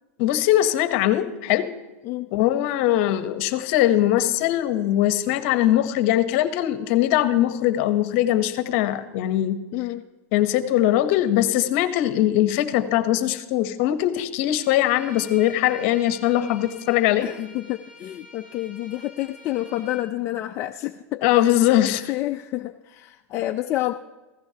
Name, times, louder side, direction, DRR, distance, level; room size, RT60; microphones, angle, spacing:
voice 1, 0.2-1.7 2.3-9.6 10.3-17.3 21.2-22.1, left 13 dB, 55° left, 12 dB, 0.9 m, -21 dB
Bowed string instrument, 14.6-20.1, left 3 dB, 20° right, 3.5 m, -46 dB
voice 2, 17.2-21.2 21.7-23.9, left 15 dB, 35° left, 5 dB, 0.4 m, -29 dB
15.5 x 15.5 x 2.8 m, 1.1 s
supercardioid pair, 130°, 8 cm